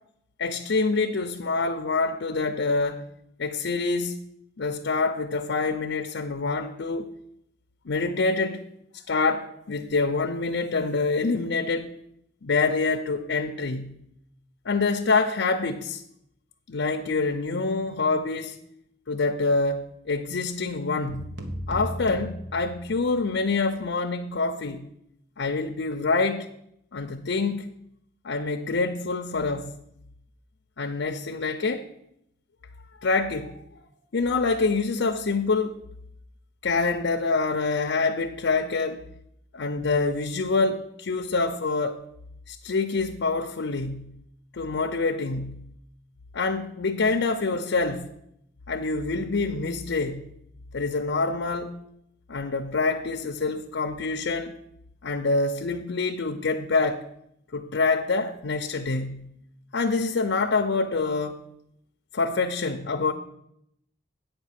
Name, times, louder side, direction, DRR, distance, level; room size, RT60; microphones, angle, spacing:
voice 1, 0.4-3.0 3.4-4.1 4.6-7.1 7.9-8.6 9.1-11.9 12.4-14.0 14.6-16.0 16.7-18.6 19.1-24.9 25.4-26.5 26.9-27.7 28.2-29.7 30.8-31.9 33.0-33.6 34.1-35.8 36.6-39.0 39.5-42.0 42.5-44.2 44.5-45.7 46.3-48.1 48.7-50.3 50.7-51.8 52.3-54.5 55.0-57.0 57.5-59.3 59.7-61.4 62.1-63.1, left 3 dB, 80° left, 0.6 m, -26 dB
sound 1, 21.1-23.3, equal, 85° right, 1.2 m, -36 dB
8.7 x 5.2 x 7.5 m
head